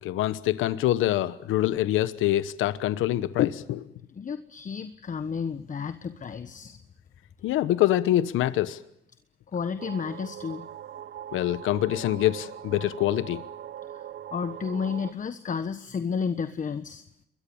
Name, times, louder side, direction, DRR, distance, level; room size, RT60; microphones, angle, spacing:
voice 1, 0.0-3.8 7.4-8.8 11.3-13.4, left 14 dB, 90° left, 1.1 m, -25 dB
voice 2, 4.1-6.8 9.5-10.7 13.9-14.0 14.3-17.0, left 6 dB, 40° left, 1.4 m, -32 dB
sound 1, 9.8-15.1, right 10 dB, 60° right, 1.2 m, -41 dB
27.5 x 22.5 x 7.1 m
cardioid pair, 90°, 20 cm